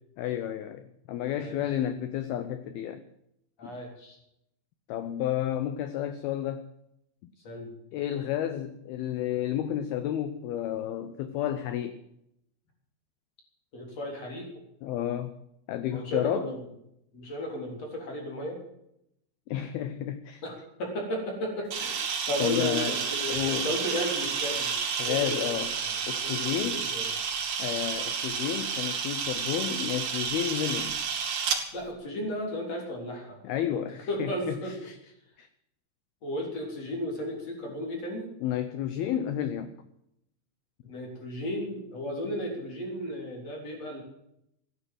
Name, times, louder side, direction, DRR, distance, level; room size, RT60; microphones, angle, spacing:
voice 1, 0.2-3.0 3.6-3.7 4.9-6.6 7.2-7.3 7.9-12.0 14.8-15.4 15.7-16.5 19.5-20.4 22.4-23.0 23.3-23.7 25.0-25.7 26.1-26.9 27.6-31.0 33.4-35.0 35.4-35.5 38.4-39.7, left 11 dB, 80° left, 11 dB, 2.2 m, -31 dB
voice 2, 3.6-4.2 7.4-7.7 13.7-14.5 15.9-16.6 17.1-18.6 20.4-24.7 25.1-25.9 26.2-27.1 31.7-33.4 34.1-34.8 36.2-38.3 40.9-44.0, equal, 35° left, 1 dB, 4.3 m, -34 dB
Camera, 21.7-31.6, right 6 dB, 65° right, 4.6 m, -31 dB
15.5 x 11.0 x 7.8 m, 0.78 s
omnidirectional pair, 5.4 m